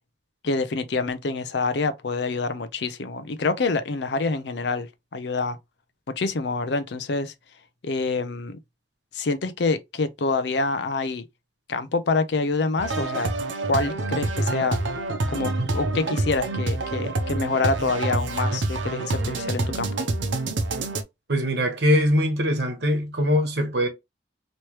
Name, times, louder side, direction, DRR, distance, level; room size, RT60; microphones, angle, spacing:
voice 1, 0.4-5.6 6.2-7.3 7.8-8.6 9.1-11.2 11.7-13.3 13.7-14.8 15.3-20.0, left 3 dB, 70° left, 0.5 m, -26 dB
sound 1, 12.8-21.0, right 2 dB, 90° right, 0.7 m, -27 dB
voice 2, 21.3-23.9, equal, 65° right, 1.1 m, -22 dB
3.1 x 3.0 x 3.0 m
head